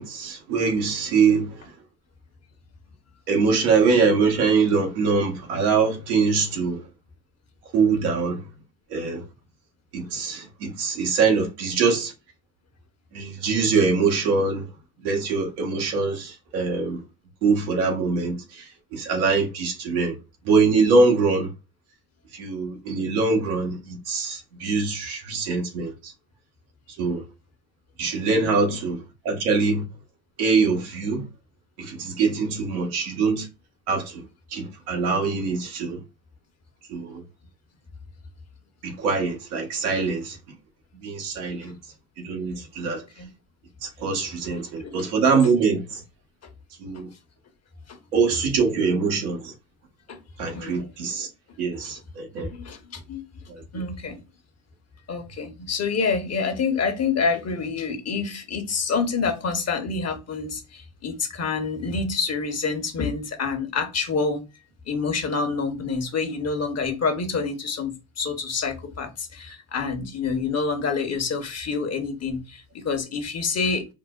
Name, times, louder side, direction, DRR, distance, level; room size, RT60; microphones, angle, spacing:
voice 1, 0.0-1.6 3.3-6.9 7.7-8.5 8.9-9.2 9.9-12.1 13.1-14.7 15.0-17.0 17.4-20.2 20.4-21.5 22.3-26.1 27.0-27.2 28.0-29.8 30.4-31.3 31.8-33.5 33.9-34.2 34.5-36.0 36.9-37.2 38.8-40.4 40.9-41.8 42.2-43.1 43.8-46.0 46.8-47.1 48.1-49.5 50.4-51.3 51.6-52.5 53.5-53.6, right 4 dB, 85° right, 1.0 m, -23 dB
voice 2, 28.4-28.8 41.6-41.7 42.9-43.3 44.8-44.9 46.9-47.0 47.9-48.0 50.1-50.2 50.5-50.9 51.8-51.9 52.4-53.2 53.7-54.2 55.1-64.4 64.9-73.9, left 4 dB, 35° left, 0.9 m, -27 dB
4.8 x 2.1 x 2.3 m
hypercardioid pair, 70°, 43 cm